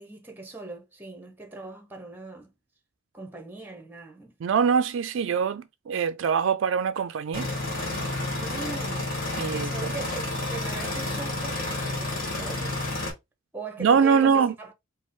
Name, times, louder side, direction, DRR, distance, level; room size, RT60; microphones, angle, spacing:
voice 1, 0.0-2.5 3.1-4.3 8.4-9.1 9.5-12.9 13.5-14.7, right 3 dB, 10° right, 0.8 m, -40 dB
voice 2, 4.4-7.5 9.4-9.9 13.8-14.5, right 6 dB, 65° right, 0.3 m, -23 dB
sound 1, 7.3-13.1, left 2 dB, 45° left, 1.4 m, -30 dB
4.9 x 2.0 x 3.6 m
head